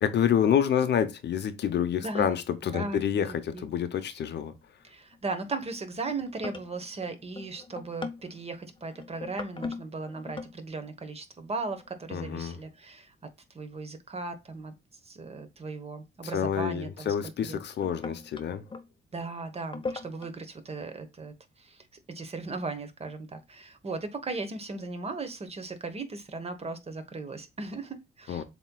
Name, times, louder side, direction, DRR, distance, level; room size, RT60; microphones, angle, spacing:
voice 1, 0.0-4.5 12.1-12.6 16.3-18.6 28.3-28.4, left 8 dB, 60° left, 0.8 m, -28 dB
voice 2, 2.7-3.7 4.8-13.1 13.5-14.7 15.0-17.1 17.4-17.6 19.1-28.4, right 3 dB, 30° right, 1.1 m, -37 dB
sound 1, 4.3-4.8 5.1-5.4 5.9-10.6 11.6-12.2 14.2-14.3 16.5-16.6 17.4-18.9 19.6-20.3, left 4 dB, 25° left, 0.7 m, -40 dB
7.4 x 3.0 x 2.3 m
cardioid pair, 90°, 20 cm